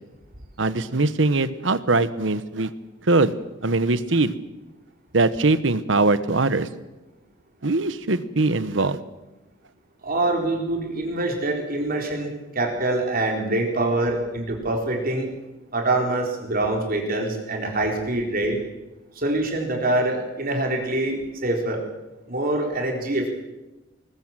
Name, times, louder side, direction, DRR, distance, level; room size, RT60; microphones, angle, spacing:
voice 1, 0.6-2.7 3.0-3.3 3.6-4.3 5.1-6.7 7.6-9.0, right 3 dB, 70° right, 14 dB, 1.1 m, -21 dB
voice 2, 10.0-15.3 15.7-18.6 19.2-21.8 22.3-23.3, right 2 dB, 50° right, 2 dB, 4.1 m, -25 dB
20.0 x 20.0 x 7.6 m, 1.1 s
head